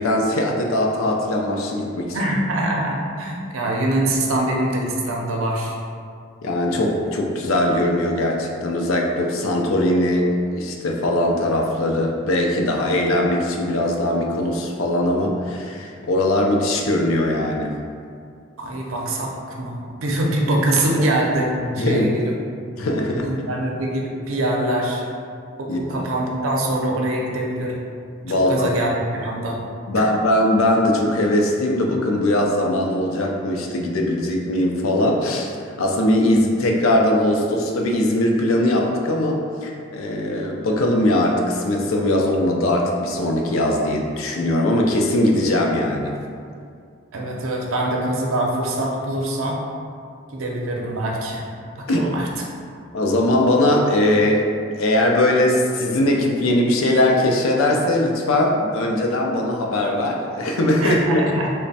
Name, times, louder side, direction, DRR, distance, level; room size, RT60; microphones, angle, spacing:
voice 1, 0.0-2.2 6.4-17.8 21.8-22.1 22.8-23.3 25.7-26.0 28.2-28.7 29.9-46.1 51.9-52.1 52.9-61.2, left 1 dB, 80° left, 1 dB, 0.5 m, -20 dB
voice 2, 2.1-5.8 18.6-19.3 19.6-22.3 23.2-25.0 25.6-27.8 28.3-29.6 29.9-30.0 47.1-49.6 50.3-51.4 51.8-52.3 60.8-61.5, right 1 dB, 85° right, -1 dB, 0.6 m, -24 dB
3.2 x 2.1 x 4.0 m, 2.3 s
head